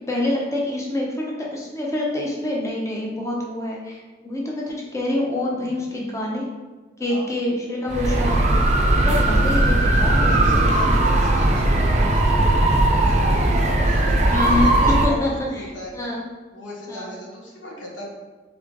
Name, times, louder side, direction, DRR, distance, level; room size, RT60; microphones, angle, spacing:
voice 1, 0.1-6.4 7.0-8.5 9.0-10.4 14.3-14.7 15.0-16.2 16.9-17.1, left 1 dB, 15° left, -3 dB, 0.7 m, -26 dB
sound 1, 7.9-15.1, right 1 dB, 40° right, 0.5 m, -18 dB
voice 2, 8.9-9.6 10.0-12.3 12.6-15.9 16.5-18.1, left 1 dB, 85° left, -2 dB, 1.0 m, -36 dB
3.7 x 3.2 x 3.6 m, 1.3 s
head